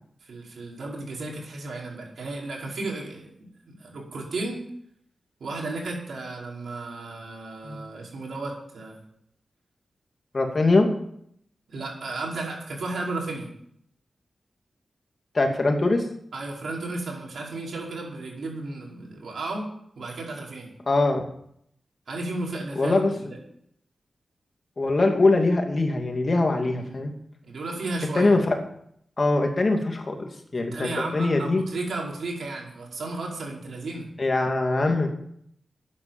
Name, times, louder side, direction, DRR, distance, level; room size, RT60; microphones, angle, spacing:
voice 1, 0.2-4.6 5.4-9.0 11.7-13.5 16.3-19.6 20.0-20.7 22.1-23.0 26.8-27.0 27.4-28.4 30.7-34.1, right 2 dB, 80° right, -2 dB, 5.2 m, -34 dB
voice 2, 10.3-10.9 15.3-16.1 20.9-21.2 22.8-23.3 24.8-27.1 28.1-28.5 29.2-31.6 34.2-35.1, left 2 dB, 40° left, 3 dB, 2.6 m, -22 dB
13.5 x 9.9 x 7.5 m, 0.71 s
wide cardioid pair, 115°, 0 cm